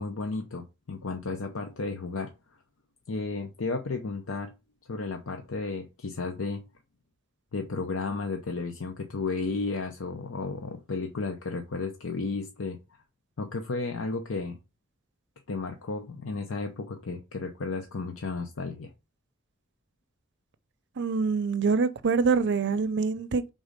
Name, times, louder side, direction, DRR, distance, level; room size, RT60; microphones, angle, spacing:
voice 1, 0.0-2.3 3.1-4.5 4.9-6.6 7.5-12.8 13.4-14.6 15.5-18.9, left 3 dB, 80° left, 0.7 m, -33 dB
voice 2, 21.0-23.5, right 5 dB, 60° right, 0.6 m, -25 dB
4.9 x 3.8 x 5.2 m
head